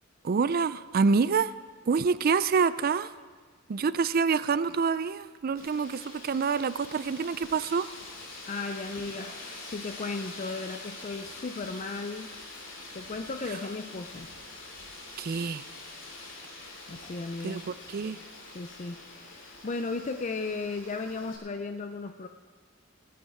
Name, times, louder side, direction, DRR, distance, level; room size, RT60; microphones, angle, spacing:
voice 1, 0.2-1.5 1.9-3.1 3.7-7.9 15.2-15.6 17.4-18.2, right 5 dB, 50° right, 15 dB, 0.4 m, -27 dB
Wind, 5.6-21.4, left 2 dB, 70° left, 3.3 m, -45 dB
voice 2, 8.5-12.3 12.9-14.3 16.9-17.7 18.5-22.3, left 3 dB, 40° left, 7 dB, 0.5 m, -36 dB
19.5 x 9.4 x 4.9 m, 1.5 s
head